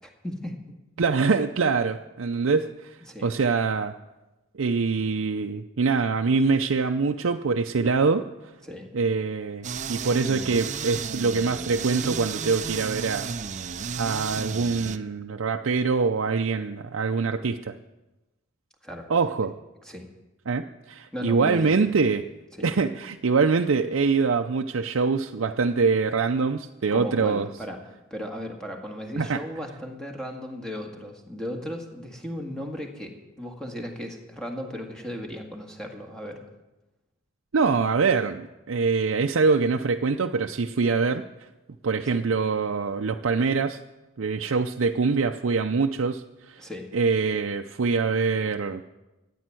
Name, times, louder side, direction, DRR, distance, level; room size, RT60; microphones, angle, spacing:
voice 1, 0.2-0.6 3.1-3.3 8.6-8.9 18.8-19.1 19.8-20.0 21.1-21.7 22.6-22.7 26.9-27.8 28.1-36.4 42.1-42.2 46.6-46.9, equal, 5° left, 2 dB, 1.8 m, -36 dB
voice 2, 1.0-3.0 3.2-3.9 4.5-8.2 8.9-13.3 13.9-17.7 19.1-19.5 20.5-22.2 22.6-27.5 29.2-29.4 37.5-41.2 41.8-43.8 44.2-46.6 46.9-48.8, right 4 dB, 80° right, 4 dB, 0.5 m, -24 dB
sound 1, 9.6-15.0, right 6 dB, 35° right, 0.5 m, -33 dB
14.0 x 9.3 x 7.7 m, 1.0 s
head